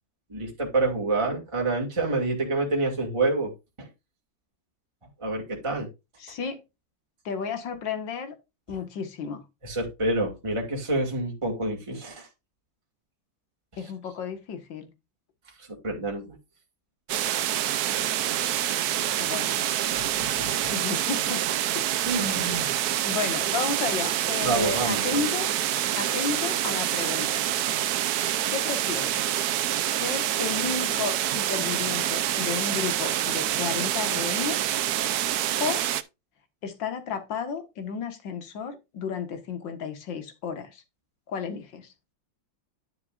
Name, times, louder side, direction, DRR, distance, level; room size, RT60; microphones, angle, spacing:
voice 1, 0.3-3.5 5.2-5.9 9.6-12.3 15.6-16.3 19.1-19.3 19.9-20.0 20.4-20.5 22.1-22.7 24.4-25.2, right 2 dB, 15° right, 2.0 m, -27 dB
voice 2, 6.2-6.6 7.3-8.4 8.7-9.4 13.8-14.9 19.2-19.7 20.7-21.4 21.8-21.9 23.0-25.5 26.0-27.4 28.5-29.3 29.8-34.7 35.6-35.9 36.6-40.8 41.3-41.9, left 6 dB, 65° left, 2.1 m, -32 dB
sound 1, 17.1-36.0, right 12 dB, 70° right, 0.9 m, -27 dB
11.0 x 6.8 x 2.5 m
omnidirectional pair, 2.2 m